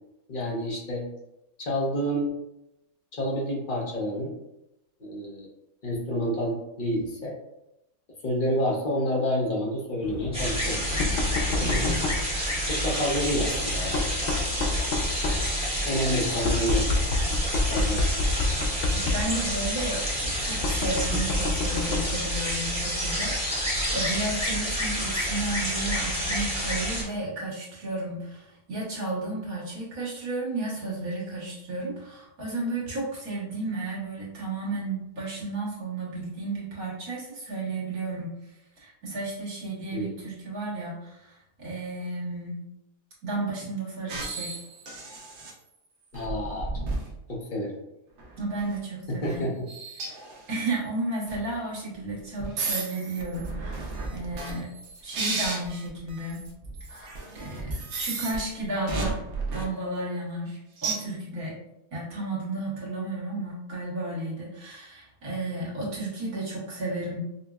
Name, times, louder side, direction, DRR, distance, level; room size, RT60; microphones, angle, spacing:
voice 1, 0.3-1.0 1.6-2.3 3.1-4.3 5.0-5.5 5.8-7.3 8.2-10.8 11.4-12.0 12.7-14.3 15.9-17.2 17.5-18.0 39.9-40.1 46.1-46.7 47.3-47.8 49.1-49.5, equal, 45° left, -3 dB, 0.7 m, -29 dB
Knock, 10.0-22.2, left 3 dB, 75° left, 0.5 m, -30 dB
sound 1, 10.3-27.0, equal, 5° right, 0.8 m, -29 dB
voice 2, 11.6-12.0 18.9-38.3 38.8-42.6 43.2-44.6 48.4-49.5 50.5-54.7 55.0-56.4 57.0-57.1 57.3-59.2 59.5-61.6 61.9-67.2, right 2 dB, 80° right, -5 dB, 1.6 m, -33 dB
sound 2, 44.1-45.5 46.1-47.2 48.2-48.8 49.2-49.4 49.7-50.6 51.3-51.5 52.4-58.4 58.9-59.6 60.8-61.0, right 3 dB, 60° right, 0.9 m, -33 dB
5.2 x 2.0 x 2.3 m, 0.88 s
omnidirectional pair, 1.5 m